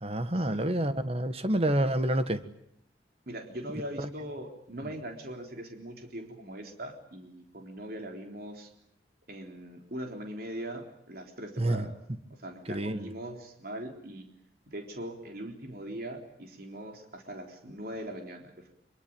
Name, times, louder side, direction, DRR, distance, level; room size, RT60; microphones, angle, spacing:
voice 1, 0.0-2.4 4.0-4.1 4.8-4.9 11.6-11.9 12.7-13.1, right 1 dB, 35° right, 10 dB, 1.6 m, -28 dB
voice 2, 3.3-8.7 9.3-11.9 12.4-14.3 14.7-18.7, right 1 dB, 55° right, 3 dB, 3.8 m, -41 dB
25.0 x 24.0 x 8.9 m, 0.73 s
head